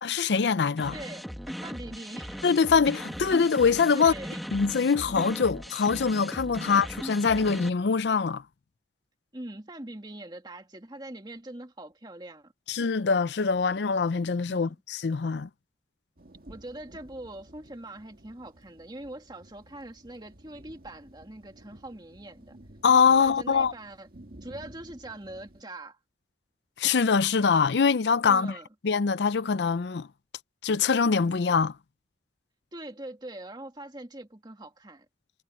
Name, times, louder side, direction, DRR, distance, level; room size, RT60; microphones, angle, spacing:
voice 1, 0.0-0.9 2.4-4.1 4.5-8.4 12.7-15.5 22.8-23.7 26.8-28.6 28.8-30.1 30.6-31.7, left 5 dB, 75° left, 0.5 m, -23 dB
sound 1, 0.8-7.7, equal, ahead, 1.4 m, -38 dB
voice 2, 0.9-2.5 3.9-4.4 9.3-12.5 14.5-14.7 16.5-22.6 23.1-24.1 24.4-26.0 28.3-28.7 32.7-35.1, right 1 dB, 25° right, 2.1 m, -42 dB
sound 2, 16.2-25.6, right 1 dB, 55° right, 2.2 m, -53 dB
head